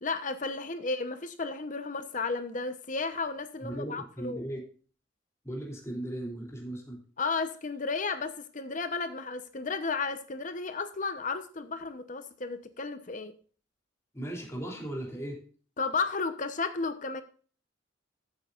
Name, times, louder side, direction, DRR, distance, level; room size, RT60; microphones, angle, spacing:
voice 1, 0.0-4.5 7.2-13.3 15.8-17.2, left 4 dB, 40° left, 10 dB, 0.9 m, -33 dB
voice 2, 3.6-4.6 5.4-7.0 14.1-15.4, right 1 dB, 15° left, -2 dB, 3.2 m, -37 dB
14.0 x 8.1 x 2.5 m, 0.41 s
head